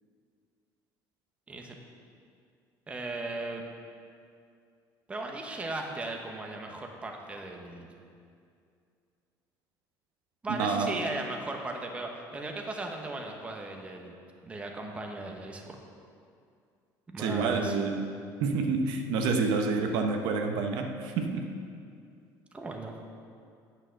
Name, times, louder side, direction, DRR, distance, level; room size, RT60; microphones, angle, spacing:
voice 1, 1.5-1.8 2.9-3.6 5.1-7.9 10.4-14.1 14.4-15.8 17.1-17.8 22.5-22.9, right 2 dB, 15° right, 2 dB, 1.0 m, -37 dB
voice 2, 10.5-11.0 17.2-18.1 18.4-21.5, right 4 dB, 75° right, 4 dB, 0.9 m, -28 dB
9.1 x 6.5 x 6.5 m, 2.4 s
cardioid pair, 140°, 8 cm